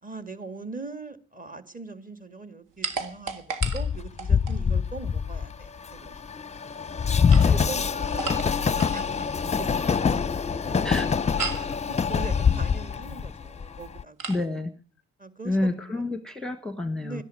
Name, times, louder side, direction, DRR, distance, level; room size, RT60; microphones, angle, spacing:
voice 1, 0.0-6.2 7.4-14.2 15.2-16.1 17.0-17.2, right 3 dB, 25° right, 11 dB, 2.1 m, -41 dB
sound 1, 2.8-4.6 7.1-9.0 11.4-11.8 14.2-14.5, right 5 dB, 75° right, 2.0 m, -34 dB
Train, 3.6-14.0, left 6 dB, 20° left, 0.7 m, -25 dB
voice 2, 14.3-14.7 15.4-17.2, left 2 dB, ahead, 10 dB, 1.4 m, -29 dB
12.5 x 10.5 x 9.1 m, 0.42 s
supercardioid pair, 65°, 31 cm